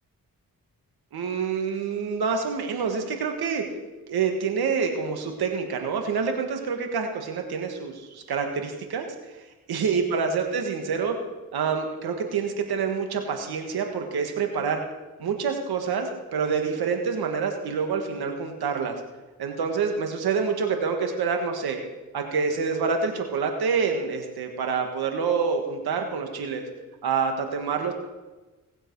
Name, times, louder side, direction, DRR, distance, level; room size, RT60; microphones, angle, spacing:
voice 1, 1.1-3.6 4.1-9.1 9.7-11.2 11.5-14.8 15.2-18.9 19.4-21.8 22.1-26.6 27.0-27.9, right 5 dB, 90° right, 4 dB, 1.7 m, -27 dB
18.5 x 7.8 x 4.7 m, 1.1 s
cardioid pair, 50°, 37 cm